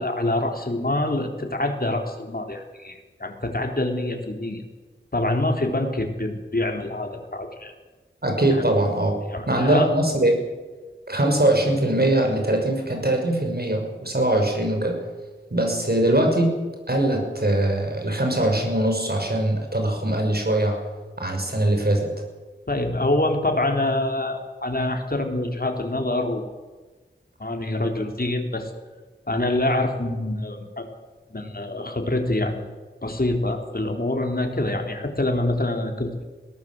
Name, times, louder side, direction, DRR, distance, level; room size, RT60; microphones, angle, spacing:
voice 1, 0.0-4.6 5.1-7.7 8.5-8.6 9.3-9.9 22.7-26.5 27.4-28.7 29.3-30.9 31.3-32.7 33.0-36.2, left 1 dB, 50° left, 4 dB, 3.7 m, -25 dB
voice 2, 8.2-9.1 9.5-10.4 11.1-15.0 15.5-16.6 16.9-20.8 21.2-22.1, right 1 dB, 50° right, 3 dB, 6.3 m, -22 dB
22.0 x 18.0 x 7.8 m, 1.3 s
wide cardioid pair, 55°, 20 cm